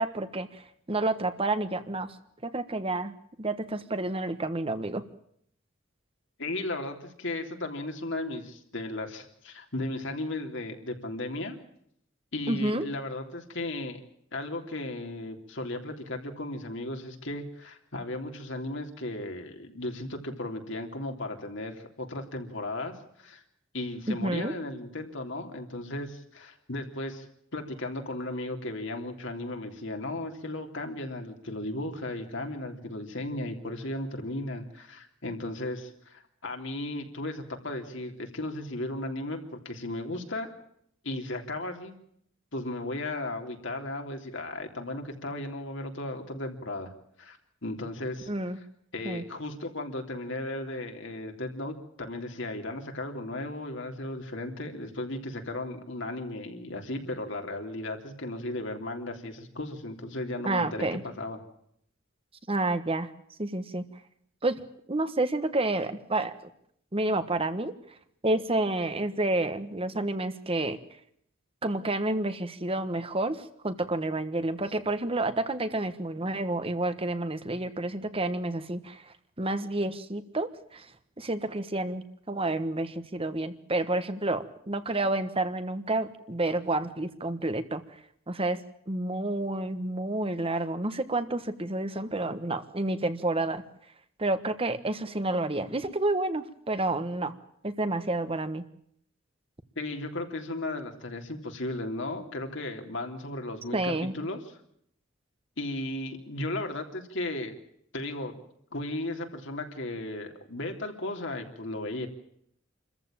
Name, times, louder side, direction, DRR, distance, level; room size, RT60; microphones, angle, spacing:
voice 1, 0.0-2.1 2.4-5.0 12.5-12.9 24.1-24.5 48.3-48.6 49.0-49.2 60.4-61.0 62.5-63.1 63.4-63.8 64.4-64.6 64.9-66.3 66.9-67.7 68.2-70.8 71.6-79.0 79.4-80.9 81.2-87.8 88.3-88.6 88.9-93.6 94.2-97.3 97.6-98.6 103.7-104.1, right 2 dB, 30° right, 10 dB, 1.3 m, -29 dB
voice 2, 6.4-11.6 12.3-14.0 14.3-23.4 23.7-27.2 27.5-40.5 41.0-41.9 42.5-46.9 47.2-47.4 47.6-48.6 48.9-61.4 99.7-104.6 105.6-107.6 107.9-108.3 108.7-112.1, left 2 dB, 65° left, 4 dB, 3.3 m, -35 dB
27.0 x 14.5 x 8.9 m, 0.70 s
head